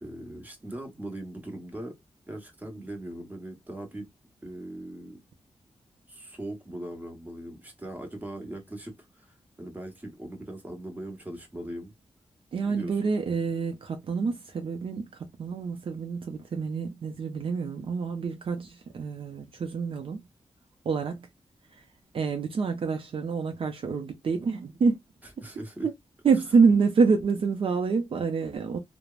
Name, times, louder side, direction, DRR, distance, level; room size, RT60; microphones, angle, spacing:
voice 1, 0.0-2.0 2.3-4.1 4.4-5.2 6.1-11.9 12.6-12.9 25.4-25.9, right 1 dB, 15° right, 1.0 m, -40 dB
voice 2, 12.5-20.2 20.8-21.3 21.7-21.8 22.1-25.0 25.4-25.5 25.8-25.9 26.2-28.8, right 5 dB, 60° right, 0.5 m, -27 dB
3.2 x 2.0 x 2.3 m
wide cardioid pair, 115°, 10 cm